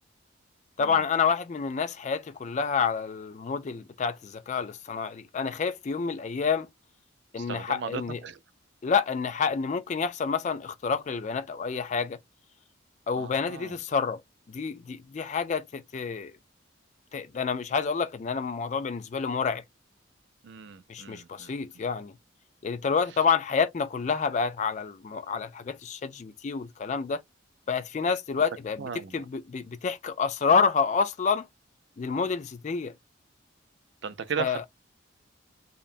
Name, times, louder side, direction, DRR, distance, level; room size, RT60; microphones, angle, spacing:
voice 1, 0.8-6.7 7.3-8.2 8.8-12.2 13.1-14.2 14.5-16.4 17.1-19.6 20.9-22.2 22.6-27.2 27.7-31.5 32.0-32.9 34.4-34.7, left 5 dB, 35° left, 0.3 m, -28 dB
voice 2, 7.4-8.4 13.2-13.7 20.4-21.5 28.8-29.2 34.0-34.7, right 6 dB, 60° right, 0.4 m, -36 dB
2.8 x 2.1 x 2.4 m
head